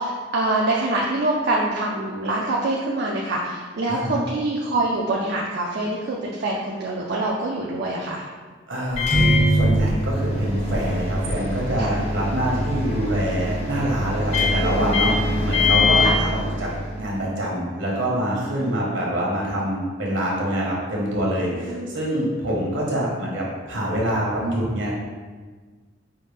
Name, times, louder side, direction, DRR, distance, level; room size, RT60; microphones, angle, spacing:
voice 1, 0.0-8.2 11.8-12.0 12.9-13.0 15.0-15.2 16.0-16.1 18.6-18.7 21.5-22.0, right 2 dB, 55° right, -3 dB, 0.4 m, -25 dB
voice 2, 8.7-16.7 17.0-24.9, right 1 dB, 70° right, -4 dB, 1.1 m, -25 dB
Microwave oven, 8.9-17.1, left 1 dB, 35° left, 0.8 m, -22 dB
5.5 x 2.1 x 3.4 m, 1.4 s
head